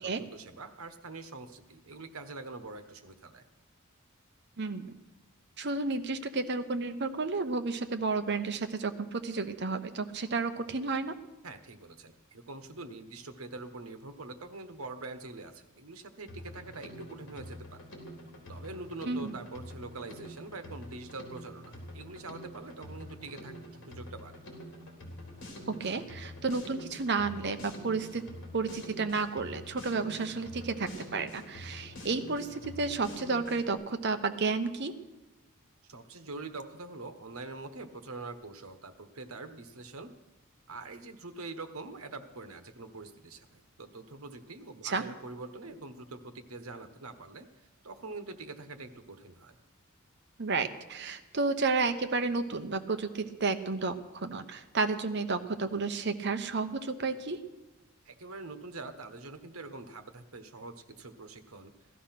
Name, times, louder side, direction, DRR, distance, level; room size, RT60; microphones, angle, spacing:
voice 1, 0.0-3.5 11.4-17.9 18.5-23.5 23.9-24.4 35.9-40.1 40.7-47.5 47.8-49.6 58.0-61.7, right 3 dB, 90° right, 9 dB, 1.3 m, -44 dB
voice 2, 4.6-5.0 5.6-11.1 19.1-19.4 25.7-28.2 28.5-34.9 44.8-45.0 50.4-57.4, right 4 dB, 55° right, 9 dB, 1.0 m, -32 dB
Drum kit, 16.3-33.7, equal, 60° left, 3.8 m, -46 dB
16.5 x 12.5 x 5.9 m, 1.1 s
head